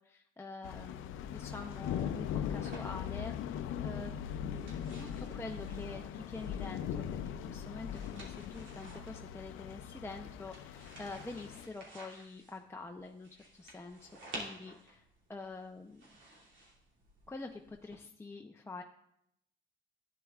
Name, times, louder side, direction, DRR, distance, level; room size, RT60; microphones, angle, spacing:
voice 1, 0.0-4.1 4.4-13.3 13.6-15.0 15.3-16.0 17.3-18.8, left 3 dB, 10° left, 3 dB, 0.6 m, -46 dB
sound 1, 0.6-11.7, left 9 dB, 90° left, 0.5 m, -40 dB
sound 2, 0.7-18.0, right 1 dB, 70° right, 2.7 m, -54 dB
11.5 x 9.3 x 2.4 m, 0.77 s
cardioid pair, 90°, 20 cm